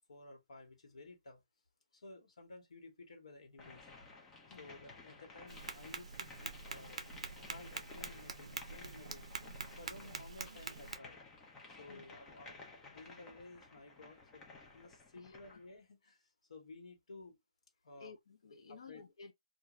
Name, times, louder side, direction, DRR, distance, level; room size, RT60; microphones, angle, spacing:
voice 1, 0.0-1.4 1.9-3.9 4.6-7.1 7.5-9.4 9.8-11.2 11.7-17.4 17.8-18.1 18.7-19.0, left 2 dB, 75° left, 1.1 m, -55 dB
sound 1, 3.6-15.6, left 3 dB, 5° left, 0.3 m, -56 dB
Tap, 5.5-11.0, right 4 dB, 65° right, 0.4 m, -46 dB
voice 2, 11.9-12.3 15.1-15.6 18.0-19.3, left 5 dB, 50° left, 0.6 m, -55 dB
2.4 x 2.3 x 2.9 m
hypercardioid pair, 175°, 4 cm